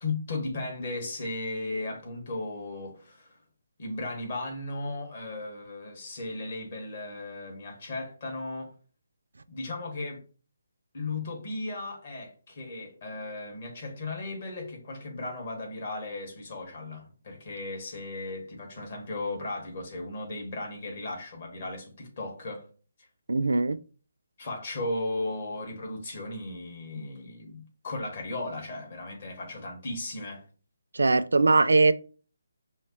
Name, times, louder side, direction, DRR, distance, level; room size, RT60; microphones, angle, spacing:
voice 1, 0.0-3.4 3.8-8.7 9.5-10.2 10.9-22.7 24.4-30.4, left 2 dB, 40° left, 1.5 m, -36 dB
voice 2, 23.3-23.8 30.9-31.9, right 3 dB, 60° right, 0.3 m, -21 dB
5.6 x 2.9 x 2.9 m
figure-of-eight pair, 145°, 0 cm